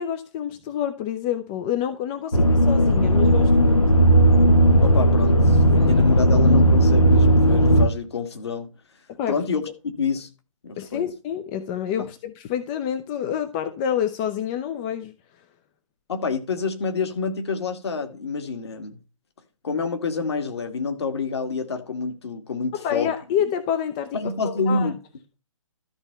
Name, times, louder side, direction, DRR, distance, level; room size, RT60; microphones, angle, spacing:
voice 1, 0.0-3.9 9.2-9.4 10.8-15.1 22.7-24.9, left 9 dB, 15° left, 0.5 m, -28 dB
sound 1, 2.3-7.9, equal, 80° left, 1.5 m, -16 dB
voice 2, 4.8-8.7 9.3-9.6 10.0-10.3 10.6-11.1 16.1-19.0 19.6-23.1 24.1-24.9, left 4 dB, 50° left, 2.3 m, -27 dB
13.0 x 4.4 x 6.9 m
figure-of-eight pair, 135°, 17 cm